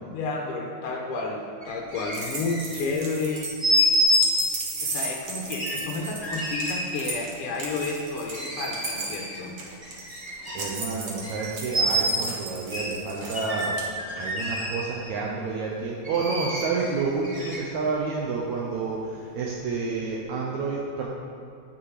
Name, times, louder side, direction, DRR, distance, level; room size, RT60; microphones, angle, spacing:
voice 1, 0.1-3.5 4.8-9.6, left 3 dB, 65° left, 0 dB, 1.5 m, -31 dB
sound 1, 1.6-2.9 3.6-4.4 5.5-6.9 8.3-9.4 9.8-10.7 11.2-11.4 11.7-12.2 12.7-12.8 13.3-15.0 16.0-17.9 18.5-18.6, equal, 15° right, 1.6 m, -27 dB
sound 2, 2.1-13.9, right 3 dB, 55° right, 1.7 m, -35 dB
voice 2, 10.5-13.7 14.2-21.1, right 4 dB, 75° right, -3 dB, 2.1 m, -29 dB
9.6 x 7.0 x 4.8 m, 2.6 s
omnidirectional pair, 3.6 m